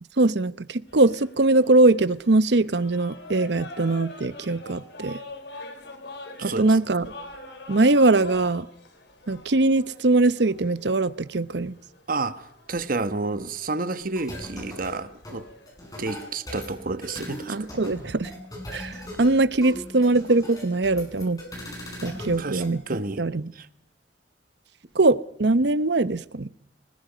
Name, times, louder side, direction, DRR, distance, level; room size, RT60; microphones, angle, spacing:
voice 1, 0.2-5.2 6.4-7.1 7.7-8.7 9.3-11.8 17.5-18.3 18.7-21.4 22.0-22.8 23.2-23.5 24.9-26.5, right 2 dB, 70° right, 0.8 m, -21 dB
sound 1, 0.9-19.7, left 2 dB, 70° left, 3.5 m, -45 dB
voice 2, 6.4-6.8 12.1-15.5 16.0-17.6 22.4-23.2 23.5-23.7, right 3 dB, 50° right, 1.2 m, -30 dB
sound 2, 14.2-22.7, left 1 dB, 20° left, 7.0 m, -39 dB
29.5 x 20.5 x 5.1 m
head